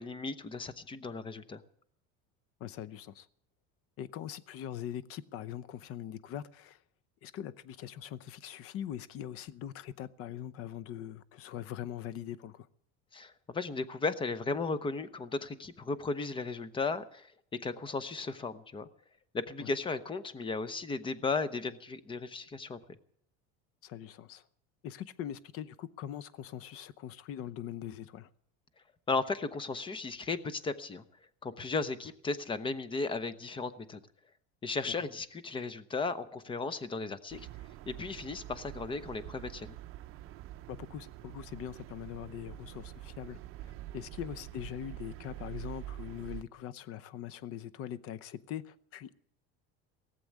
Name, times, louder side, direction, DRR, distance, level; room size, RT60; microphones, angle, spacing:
voice 1, 0.0-1.6 13.1-18.9 19.3-22.8 29.1-31.0 31.4-34.0 34.6-37.5 37.9-39.7, left 4 dB, 15° left, 0.8 m, -35 dB
voice 2, 2.6-3.3 4.0-6.8 7.2-12.7 19.6-19.7 23.8-24.5 24.8-28.3 34.9-35.0 40.7-49.1, left 10 dB, 50° left, 0.8 m, -42 dB
sound 1, 37.3-46.4, right 14 dB, 45° right, 0.8 m, -46 dB
18.0 x 7.8 x 9.6 m
cardioid pair, 140°, 30 cm